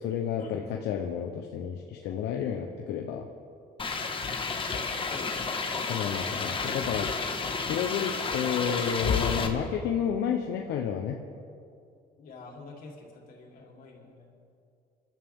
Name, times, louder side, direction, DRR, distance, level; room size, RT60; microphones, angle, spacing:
voice 1, 0.0-3.3 5.9-7.1 7.7-11.2, left 8 dB, 80° left, 2 dB, 1.0 m, -31 dB
sound 1, 3.8-9.5, left 4 dB, 30° left, 1.5 m, -31 dB
voice 2, 5.1-5.6 12.2-14.3, left 3 dB, 60° left, -2 dB, 4.0 m, -46 dB
25.5 x 12.5 x 3.8 m, 2.4 s
cardioid pair, 110°, 17 cm